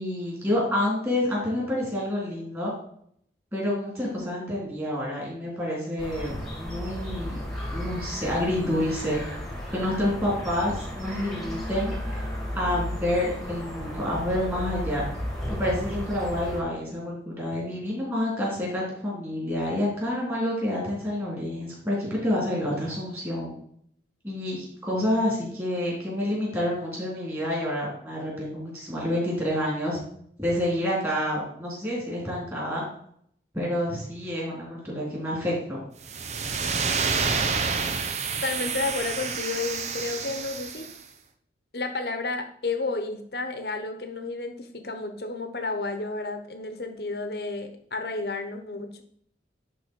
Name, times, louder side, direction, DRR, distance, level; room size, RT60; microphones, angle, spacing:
voice 1, 0.0-2.7 3.5-7.4 7.7-9.2 9.7-12.3 12.5-15.1 15.6-23.6 24.2-30.0 30.4-32.8 33.5-35.8, left 1 dB, 15° right, -4 dB, 3.8 m, -28 dB
sound 1, 6.0-16.6, equal, ahead, 1.9 m, -34 dB
sound 2, 36.0-41.0, right 5 dB, 40° right, 0.7 m, -28 dB
voice 2, 38.4-40.9 41.7-49.0, left 3 dB, 60° left, 7 dB, 1.1 m, -31 dB
11.0 x 4.4 x 4.7 m, 0.66 s
head